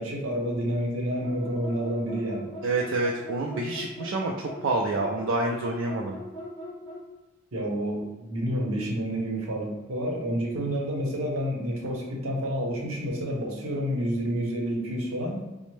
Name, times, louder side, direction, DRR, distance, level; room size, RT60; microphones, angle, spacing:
voice 1, 0.0-2.5 7.5-15.4, equal, 80° right, -1 dB, 0.8 m, -29 dB
sound 1, 1.2-7.1, left 1 dB, 10° left, 1.2 m, -40 dB
voice 2, 2.6-6.2, right 2 dB, 65° right, 0 dB, 0.3 m, -28 dB
4.2 x 2.0 x 3.2 m, 1.1 s
head